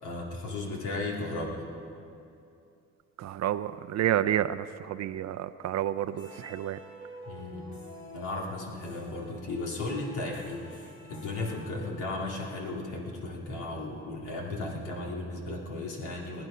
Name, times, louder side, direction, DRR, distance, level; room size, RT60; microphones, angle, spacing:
voice 1, 0.0-1.6 7.2-7.7 8.1-16.5, left 2 dB, 90° left, -1 dB, 2.5 m, -35 dB
voice 2, 3.2-6.8, right 11 dB, 60° right, 11 dB, 0.5 m, -30 dB
sound 1, 6.1-12.3, equal, 70° left, 2.9 m, -49 dB
19.5 x 9.5 x 5.6 m, 2.6 s
cardioid pair, 90°, 30 cm